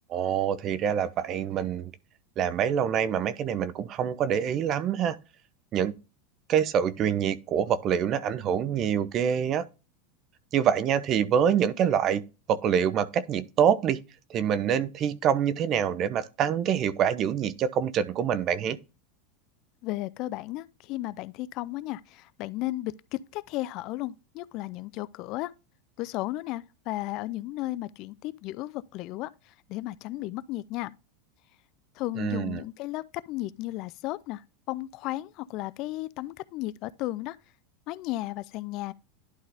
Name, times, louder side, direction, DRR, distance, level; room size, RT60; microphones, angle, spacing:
voice 1, 0.1-1.9 2.4-5.2 5.7-5.9 6.5-9.6 10.5-12.2 12.5-14.0 14.3-18.8 32.2-32.6, right 8 dB, 40° right, 0.8 m, -26 dB
voice 2, 19.8-25.5 26.0-30.9 32.0-37.4 37.9-38.9, left 17 dB, 50° left, 0.4 m, -34 dB
11.5 x 3.9 x 3.4 m
supercardioid pair, 120°, 0 cm